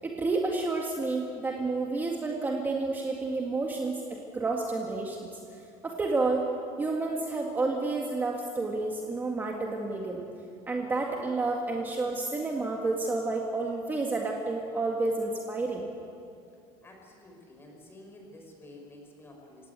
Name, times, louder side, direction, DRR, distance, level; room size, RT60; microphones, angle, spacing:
voice 1, 0.0-4.0 4.3-6.5 6.8-10.2 10.7-15.9, right 3 dB, 15° right, 0 dB, 1.9 m, -30 dB
voice 2, 16.8-19.7, left 1 dB, 20° left, 1 dB, 5.2 m, -50 dB
27.0 x 17.5 x 8.3 m, 2.5 s
cardioid pair, 150°, 11 cm